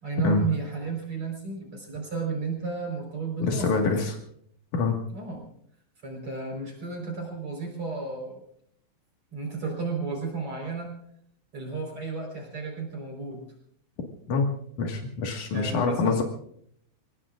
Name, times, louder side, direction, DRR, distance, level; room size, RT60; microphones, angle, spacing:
voice 1, 0.0-3.8 5.1-5.4 6.0-8.4 9.3-10.9 11.5-13.4 15.5-16.2, right 4 dB, 45° right, 0 dB, 5.3 m, -33 dB
voice 2, 3.4-4.2 4.7-5.0 14.3-14.5 14.8-16.2, left 4 dB, 90° left, 1 dB, 3.3 m, -25 dB
30.0 x 18.0 x 2.5 m, 0.68 s
omnidirectional pair, 3.4 m